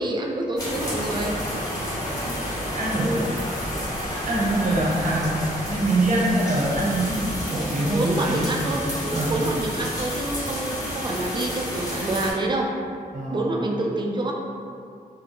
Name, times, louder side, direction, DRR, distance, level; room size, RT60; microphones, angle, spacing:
voice 1, 0.0-1.3 7.9-12.7 13.3-14.3, right 2 dB, 30° right, 0 dB, 0.4 m, -27 dB
sound 1, 0.6-12.3, equal, 25° left, 0.9 m, -30 dB
voice 2, 2.7-3.3 4.1-5.4 5.7-8.5 9.1-9.3 13.1-13.5, right 1 dB, 55° right, -6 dB, 0.8 m, -24 dB
2.8 x 2.1 x 2.6 m, 2.4 s
cardioid pair, 65°, 16 cm